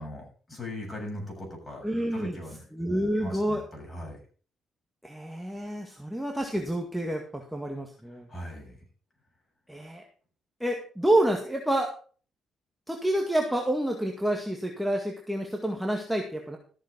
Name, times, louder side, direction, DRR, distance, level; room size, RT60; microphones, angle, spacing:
voice 1, 0.0-2.6 3.1-4.2 8.3-8.8, left 1 dB, 20° left, 1 dB, 7.2 m, -39 dB
voice 2, 1.8-2.4 2.7-3.6 5.0-8.3 9.7-10.0 10.6-11.9 12.9-16.6, right 1 dB, 5° right, 1 dB, 2.0 m, -28 dB
14.0 x 7.4 x 5.4 m, 0.41 s
cardioid pair, 90°, 0 cm